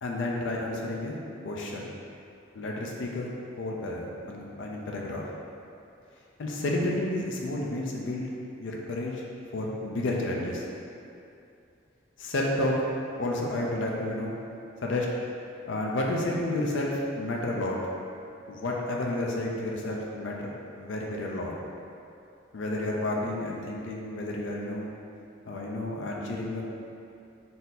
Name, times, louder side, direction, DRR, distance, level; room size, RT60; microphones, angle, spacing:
voice 1, 0.0-1.2 1.4-1.9 2.5-3.3 3.6-5.2 6.4-8.3 8.6-9.2 9.5-10.6 12.2-12.8 13.2-14.4 14.8-15.1 15.7-17.8 18.5-21.5 22.5-24.9 25.5-26.6, left 1 dB, 65° left, -2 dB, 0.5 m, -31 dB
4.1 x 2.7 x 3.9 m, 2.6 s
head